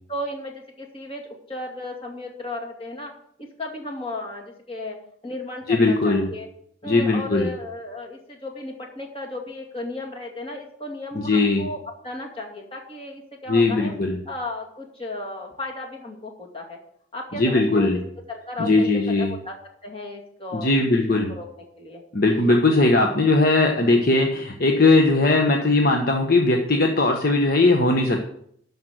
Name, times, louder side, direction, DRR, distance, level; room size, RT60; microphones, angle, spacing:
voice 1, 0.1-3.1 3.6-5.0 5.2-6.5 6.8-11.8 12.0-13.9 14.3-16.8 17.1-17.9 18.3-18.9 19.2-19.5 19.8-20.7 21.1-22.0, left 2 dB, 30° left, 0 dB, 2.4 m, -34 dB
voice 2, 5.7-6.3 6.9-7.5 11.1-11.7 13.5-14.2 17.3-18.0 18.6-19.3 20.5-21.3 22.1-28.3, left 2 dB, 50° left, 2 dB, 1.1 m, -19 dB
12.5 x 5.3 x 7.8 m, 0.67 s
head